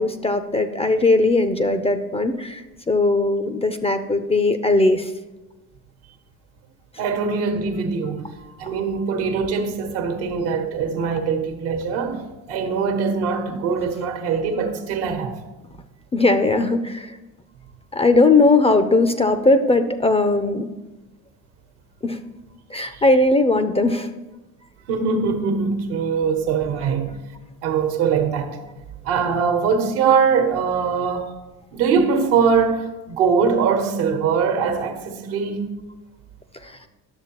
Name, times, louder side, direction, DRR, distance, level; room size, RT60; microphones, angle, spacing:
voice 1, 0.0-5.1 16.1-17.2 17.9-20.7 22.0-22.2 22.7-24.1 36.6-36.8, left 2 dB, 15° left, 0.4 m, -19 dB
voice 2, 7.0-8.3 8.6-12.2 12.5-15.4 22.8-23.0 24.9-27.2 27.6-28.6 29.0-31.3 31.7-35.7, right 5 dB, 75° right, 1.1 m, -22 dB
10.5 x 6.7 x 3.0 m
supercardioid pair, 70°, 39 cm